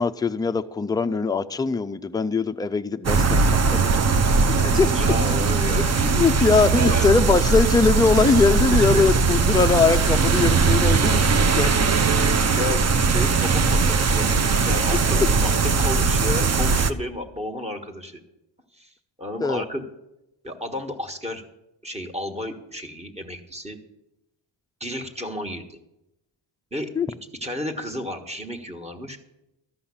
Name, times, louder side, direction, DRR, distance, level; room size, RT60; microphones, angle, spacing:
voice 1, 0.0-3.4 3.7-3.9 4.6-5.0 6.1-11.7 12.3-12.4 19.4-19.6 27.0-27.1, left 4 dB, 10° left, 9 dB, 0.3 m, -21 dB
sound 1, 3.0-16.9, right 4 dB, 35° right, 0.6 m, -20 dB
voice 2, 4.9-7.1 8.5-9.0 11.6-18.2 18.7-18.9 19.2-19.8 20.4-21.4 21.8-23.8 24.8-25.8 26.7-26.9 27.4-29.2, left 1 dB, 15° right, 4 dB, 1.4 m, -32 dB
13.5 x 5.7 x 8.5 m, 0.91 s
cardioid pair, 110°, 47 cm